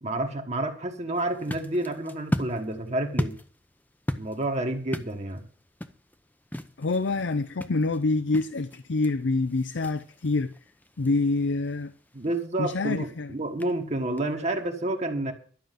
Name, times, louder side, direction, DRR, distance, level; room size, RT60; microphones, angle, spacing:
voice 1, 0.0-3.3 4.1-5.4 12.1-15.3, right 1 dB, 35° right, 1.4 m, -29 dB
sound 1, 1.1-14.7, left 1 dB, 10° left, 0.7 m, -38 dB
voice 2, 6.8-10.5 11.0-11.9 12.6-13.3, left 3 dB, 70° left, 0.6 m, -26 dB
12.0 x 6.3 x 9.2 m
head